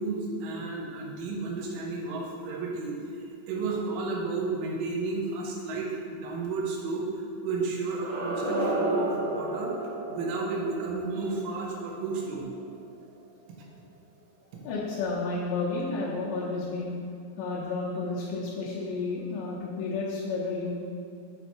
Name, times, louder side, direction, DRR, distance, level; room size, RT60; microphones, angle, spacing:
voice 1, 0.0-2.9 3.5-9.7 10.1-12.5, right 3 dB, 90° right, -2 dB, 3.5 m, -32 dB
sound 1, 7.9-12.8, right 1 dB, 60° right, 2.5 m, -33 dB
voice 2, 14.7-16.9 17.4-20.7, left 3 dB, 90° left, -7 dB, 3.6 m, -31 dB
8.4 x 4.2 x 4.6 m, 2.4 s
omnidirectional pair, 5.4 m